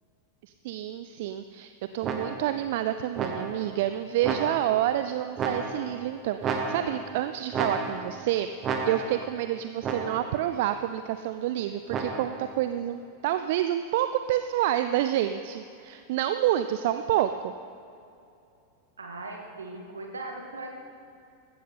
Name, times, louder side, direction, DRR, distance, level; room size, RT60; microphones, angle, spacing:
voice 1, 0.4-8.5 8.8-17.5, right 12 dB, 50° right, 10 dB, 0.4 m, -28 dB
sound 1, 2.0-2.6 3.2-3.7 4.2-4.9 5.4-6.0 6.4-7.2 7.5-8.2 8.6-9.3 9.8-10.4 11.9-12.5, right 4 dB, 30° right, 1.5 m, -32 dB
voice 2, 19.0-20.8, right 2 dB, 75° right, 2 dB, 2.0 m, -39 dB
16.0 x 13.0 x 4.3 m, 2.6 s
figure-of-eight pair, 90°, 0 cm